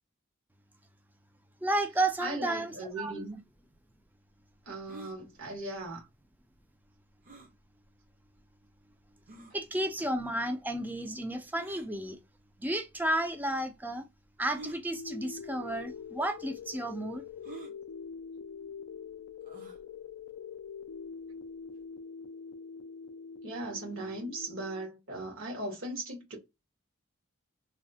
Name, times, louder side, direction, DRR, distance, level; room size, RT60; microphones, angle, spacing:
voice 1, 1.6-3.2 9.5-12.2 12.6-14.1 14.4-17.2, right 1 dB, 10° right, 0.4 m, -32 dB
voice 2, 2.2-3.4 4.6-6.0 23.4-26.4, right 2 dB, 65° right, 1.3 m, -38 dB
sound 1, 4.9-5.2 7.2-7.5 8.3-8.4 9.3-9.5 11.6-11.9 12.9-13.0 14.5-14.8 15.7-15.9 16.2-16.3 17.4-17.7 19.4-19.8, right 3 dB, 40° right, 0.7 m, -47 dB
sound 2, 14.9-24.9, left 6 dB, 70° left, 0.3 m, -44 dB
3.1 x 2.1 x 2.6 m
head